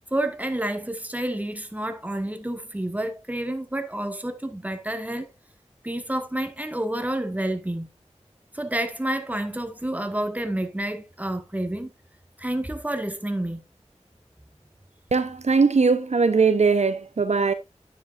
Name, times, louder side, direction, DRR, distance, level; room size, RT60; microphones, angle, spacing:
voice 1, 0.1-5.3 5.8-7.9 8.5-11.9 12.4-13.6, right 1 dB, 15° right, 1.4 m, -29 dB
voice 2, 15.1-17.5, right 4 dB, 70° right, 0.7 m, -20 dB
9.6 x 7.5 x 2.5 m
wide cardioid pair, 60°, 12 cm